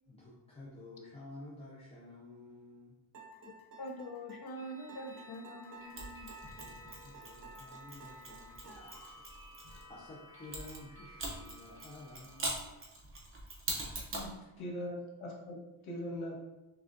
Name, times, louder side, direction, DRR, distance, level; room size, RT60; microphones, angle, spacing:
voice 1, 0.1-2.9 6.6-9.2 9.9-12.6, left 2 dB, 15° left, -6 dB, 0.5 m, -52 dB
sound 1, 3.1-9.2, right 3 dB, 55° right, 1.3 m, -53 dB
voice 2, 3.8-6.3, equal, 50° left, 1 dB, 0.7 m, -44 dB
sound 2, 4.6-12.5, equal, 5° right, 1.3 m, -56 dB
Mechanisms, 6.0-9.8 10.5-14.3, right 2 dB, 25° right, 0.7 m, -42 dB
voice 3, 14.2-16.3, equal, 80° left, -2 dB, 1.2 m, -41 dB
6.0 x 2.3 x 2.6 m, 0.98 s
wide cardioid pair, 160°, 48 cm